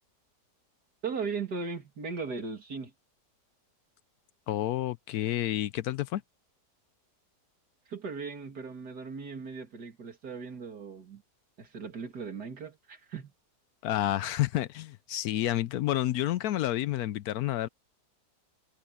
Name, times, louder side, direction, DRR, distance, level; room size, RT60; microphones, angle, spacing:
voice 1, 1.0-2.9 7.9-11.2 11.6-13.3, right 5 dB, 75° right, 3.3 m, -38 dB
voice 2, 4.5-6.2 13.8-17.7, left 13 dB, 75° left, 1.0 m, -29 dB
omnidirectional pair, 1.8 m